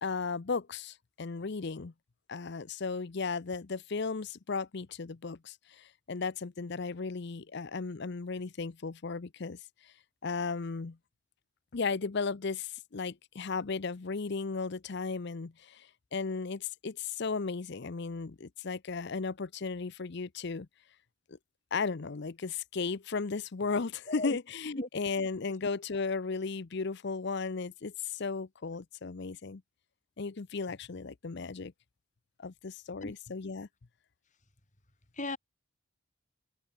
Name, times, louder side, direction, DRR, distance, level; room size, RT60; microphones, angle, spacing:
voice 1, 0.0-1.9 2.3-9.6 10.2-11.0 11.7-15.9 16.1-20.7 21.7-29.6 30.2-31.7 32.4-33.7, left 4 dB, 50° left, 0.6 m, -35 dB
voice 2, 24.1-24.4 24.8-24.9 33.0-33.1 35.1-35.4, left 2 dB, 35° left, 3.7 m, -35 dB
head